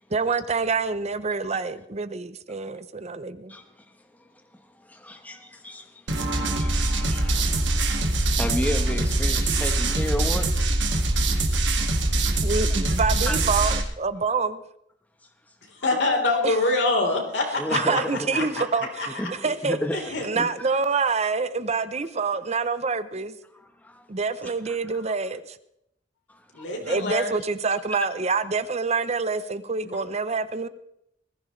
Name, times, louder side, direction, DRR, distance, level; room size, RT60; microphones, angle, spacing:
voice 1, 0.1-3.6 12.4-14.6 16.4-16.5 17.7-19.8 20.2-23.3 24.1-25.6 26.9-30.7, right 4 dB, 40° right, 13 dB, 0.7 m, -26 dB
voice 2, 4.5-5.0 5.8-10.5 13.2-13.4 17.6-18.9 19.2-20.5 23.5-24.1 24.4-24.5 26.9-27.0, left 1 dB, 10° left, 6 dB, 1.1 m, -33 dB
sound 1, 6.1-13.8, right 2 dB, 85° right, 2.0 m, -23 dB
voice 3, 15.7-18.0 18.3-18.6 19.0-19.5 19.9-20.3 26.6-27.3 29.8-30.0, left 2 dB, 75° left, 1 dB, 3.8 m, -25 dB
20.0 x 15.0 x 3.2 m, 0.76 s
head